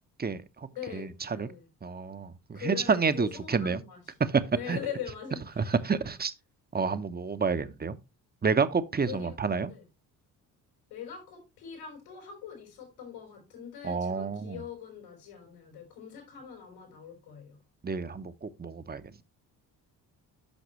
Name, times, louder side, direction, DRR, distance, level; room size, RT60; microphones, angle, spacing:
voice 1, 0.2-1.5 1.8-3.8 4.2-4.8 5.6-6.3 6.7-8.0 8.4-9.7 13.8-14.6 17.8-19.2, right 5 dB, 20° right, 0.8 m, -29 dB
voice 2, 0.7-1.7 2.5-4.0 4.5-5.7 6.0-6.1 9.1-9.3 9.7-9.8 10.9-17.6, left 8 dB, 85° left, 4.6 m, -42 dB
10.5 x 5.8 x 3.1 m
hypercardioid pair, 50°, 44 cm